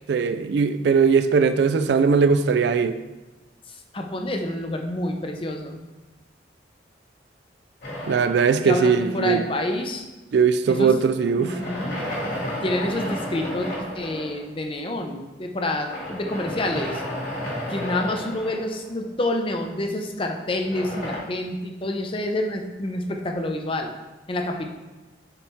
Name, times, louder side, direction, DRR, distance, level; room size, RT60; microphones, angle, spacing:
voice 1, 0.1-3.0 8.1-9.4 10.3-11.6, right 5 dB, 60° right, 0.3 m, -20 dB
voice 2, 3.7-5.8 8.5-10.1 10.7-11.0 11.2-12.0 12.6-17.0 17.7-23.9 24.3-24.7, left 1 dB, 30° left, 0.6 m, -28 dB
sound 1, 7.8-9.3 11.2-14.4 15.9-19.1 20.5-21.2, equal, 50° left, 1.9 m, -32 dB
7.0 x 4.3 x 3.5 m
head